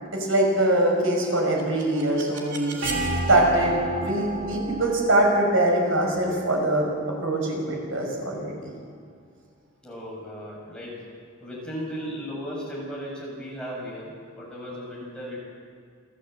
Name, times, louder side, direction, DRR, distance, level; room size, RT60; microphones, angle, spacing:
voice 1, 0.1-2.8 3.3-6.9 7.2-8.7, right 1 dB, 85° right, 0 dB, 6.0 m, -23 dB
sound 1, 1.4-7.2, right 2 dB, 65° right, 3.4 m, -33 dB
voice 2, 9.8-10.9 11.4-15.4, equal, 5° left, -5 dB, 6.6 m, -36 dB
28.5 x 14.0 x 8.0 m, 2.2 s
head